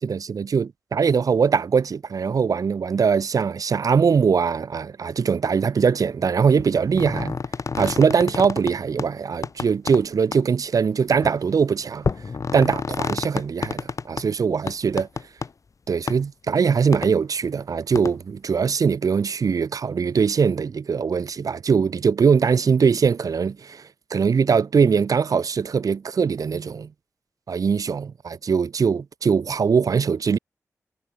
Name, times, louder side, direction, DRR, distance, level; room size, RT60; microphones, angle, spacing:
voice 1, 0.0-7.4 7.7-12.0 12.5-15.1 15.9-23.8 24.1-26.9 27.5-30.4, right 6 dB, 80° right, 3.3 m, -21 dB
sound 1, 6.6-8.7 9.0-9.1 9.4-10.0 10.3-10.4 11.1-11.3 12.0-14.2 14.7-15.5 16.1-16.2 16.9-17.1 17.9-18.1, left 5 dB, 65° left, 5.7 m, -28 dB
cardioid pair, 65°, 6 cm